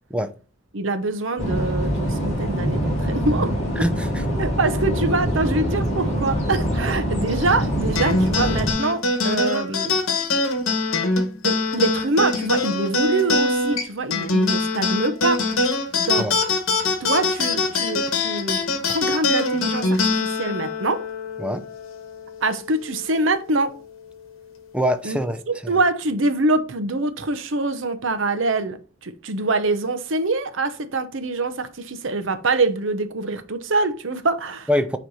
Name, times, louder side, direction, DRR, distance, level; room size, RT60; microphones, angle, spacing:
voice 1, 0.7-3.5 4.3-9.9 11.4-15.4 16.0-16.3 17.0-21.0 22.4-23.7 25.0-25.2 25.5-34.7, right 2 dB, 65° right, 0.9 m, -24 dB
sound 1, 1.4-8.7, equal, 35° left, 2.8 m, -24 dB
voice 2, 3.8-4.2 16.2-16.3 21.4-21.6 24.7-25.8 34.7-35.0, equal, 5° right, 0.6 m, -24 dB
sound 2, 7.9-22.7, left 3 dB, 85° left, 1.2 m, -23 dB
9.3 x 3.3 x 4.1 m
head